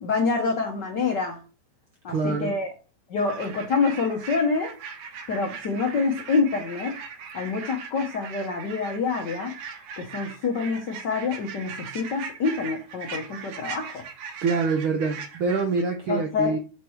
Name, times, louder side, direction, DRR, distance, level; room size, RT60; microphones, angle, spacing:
voice 1, 0.0-1.4 2.0-2.7 3.1-4.7 5.3-6.9 7.3-9.5 10.0-14.0 16.1-16.6, left 4 dB, 85° left, 3 dB, 0.9 m, -26 dB
voice 2, 2.1-2.6 14.4-16.6, right 4 dB, 85° right, 3 dB, 1.1 m, -25 dB
sound 1, 3.2-15.8, right 6 dB, 70° right, 2.0 m, -39 dB
6.6 x 3.0 x 4.8 m, 0.34 s
omnidirectional pair, 3.3 m